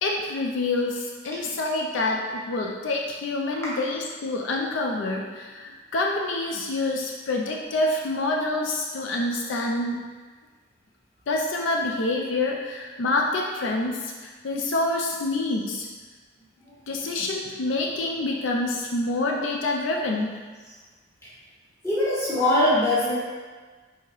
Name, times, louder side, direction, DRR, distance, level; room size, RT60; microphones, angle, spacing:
voice 1, 0.0-10.0 11.3-15.9 16.9-20.3, left 2 dB, 75° left, 0 dB, 0.4 m, -27 dB
voice 2, 21.8-23.1, left 1 dB, 15° left, -9 dB, 1.1 m, -22 dB
4.6 x 3.5 x 3.0 m, 1.4 s
head